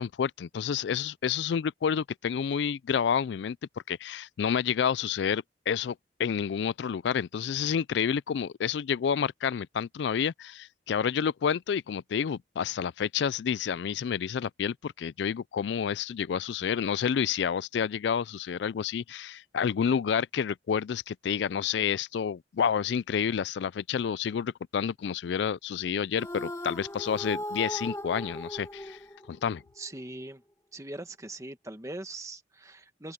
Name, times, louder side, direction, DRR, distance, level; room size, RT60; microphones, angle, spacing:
voice 1, 0.0-3.6 3.9-29.0 29.3-29.6, left 7 dB, 75° left, 0.3 m, -29 dB
sound 1, 26.2-29.6, left 1 dB, 15° left, 1.8 m, -38 dB
voice 2, 29.8-30.4 30.7-33.1, right 2 dB, 15° right, 1.6 m, -41 dB
head